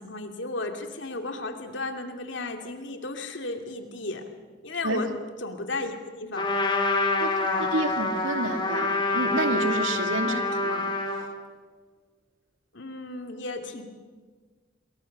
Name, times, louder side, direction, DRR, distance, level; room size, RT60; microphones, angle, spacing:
voice 1, 0.0-4.2 4.6-5.1 5.4-6.6 7.3-7.7 10.2-10.5 12.7-13.8, left 2 dB, 65° left, 5 dB, 2.7 m, -34 dB
Trumpet, 6.3-11.3, left 2 dB, 25° left, 3.5 m, -26 dB
voice 2, 7.2-10.9, right 2 dB, 85° right, 6 dB, 2.5 m, -30 dB
27.5 x 23.0 x 6.8 m, 1.5 s
head